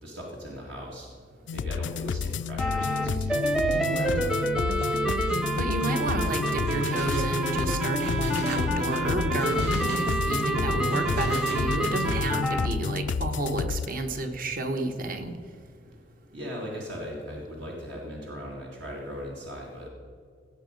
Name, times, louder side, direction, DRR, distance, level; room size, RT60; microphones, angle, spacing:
voice 1, 0.0-1.1 1.5-4.5 16.3-19.9, equal, 70° right, -2 dB, 2.2 m, -39 dB
sound 1, 1.5-13.9, left 5 dB, 85° left, 0.4 m, -31 dB
sound 2, 2.6-12.7, right 1 dB, 5° right, 0.7 m, -28 dB
voice 2, 3.7-4.2 5.6-15.3, right 2 dB, 50° right, 6 dB, 1.2 m, -31 dB
Engine, 4.8-5.0 5.2-5.4 5.8-10.5 10.9-11.7, right 2 dB, 85° right, 2.3 m, -43 dB
16.5 x 7.7 x 5.3 m, 2.1 s
head